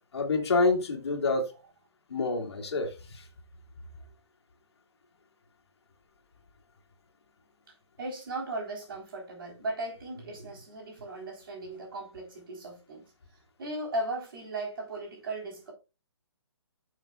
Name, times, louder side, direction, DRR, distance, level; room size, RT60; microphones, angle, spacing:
voice 1, 0.1-1.5 2.1-3.2, left 3 dB, 65° left, 2.3 m, -27 dB
voice 2, 8.0-13.1 13.6-15.7, right 2 dB, 50° right, 4.1 m, -37 dB
11.0 x 6.5 x 2.4 m
hypercardioid pair, 165°, 15 cm